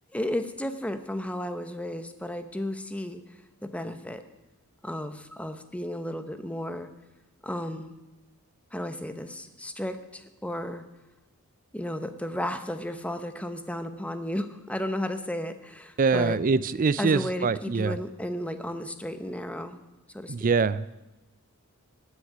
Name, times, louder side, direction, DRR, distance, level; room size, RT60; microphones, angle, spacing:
voice 1, 0.1-3.2 3.6-4.2 4.8-6.9 7.4-8.0 8.7-10.8 11.7-16.4 17.0-19.8 20.1-20.5, left 1 dB, 5° left, 9 dB, 0.8 m, -33 dB
voice 2, 16.0-18.0 20.3-20.8, right 4 dB, 40° right, 17 dB, 0.4 m, -24 dB
16.5 x 6.4 x 9.9 m, 1.1 s
head